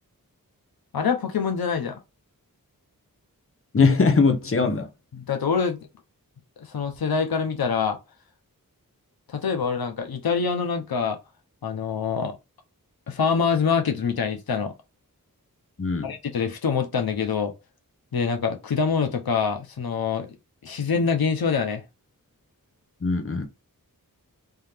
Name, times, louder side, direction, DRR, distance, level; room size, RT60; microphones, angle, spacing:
voice 1, 0.9-2.0 5.1-5.9 6.6-8.0 9.3-11.2 11.6-12.4 13.1-14.7 16.0-17.5 18.1-20.3 20.6-21.8, left 6 dB, 90° left, 0.7 m, -25 dB
voice 2, 3.7-4.9 15.8-16.1 23.0-23.5, left 4 dB, 40° left, 0.8 m, -21 dB
3.6 x 2.8 x 3.4 m
wide cardioid pair, 80°, 35 cm